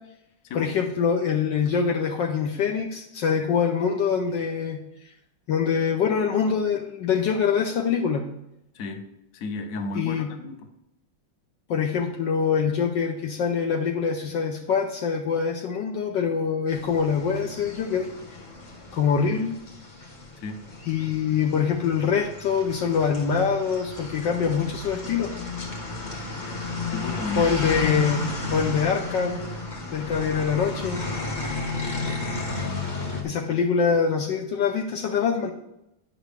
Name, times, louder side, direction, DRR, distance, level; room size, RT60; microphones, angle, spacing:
voice 1, 0.5-4.8 5.5-8.2 9.9-10.3 11.7-18.1 18.9-19.6 20.9-25.3 27.4-28.3 28.5-29.5 29.9-31.0 33.2-35.5, left 6 dB, 70° left, 3 dB, 1.3 m, -24 dB
voice 2, 8.7-9.1 9.3-10.7 20.4-20.6 26.9-27.5, left 3 dB, 50° left, 5 dB, 1.1 m, -33 dB
sound 1, 16.7-33.2, left 3 dB, 30° left, 1.0 m, -33 dB
10.0 x 6.0 x 3.4 m, 0.85 s
omnidirectional pair, 2.3 m